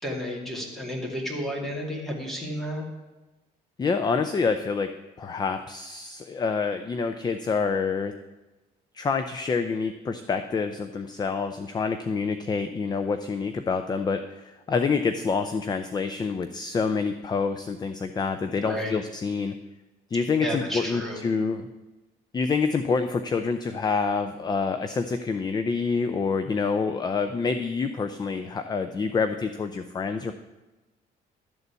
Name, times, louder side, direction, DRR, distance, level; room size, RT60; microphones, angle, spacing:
voice 1, 0.0-2.9 18.6-18.9 20.4-21.2, equal, ahead, -1 dB, 2.4 m, -32 dB
voice 2, 3.8-8.2 8.9-19.5 20.1-21.7 22.3-30.3, left 5 dB, 25° left, 9 dB, 0.5 m, -27 dB
12.0 x 4.1 x 8.1 m, 1.1 s
cardioid pair, 110°, 17 cm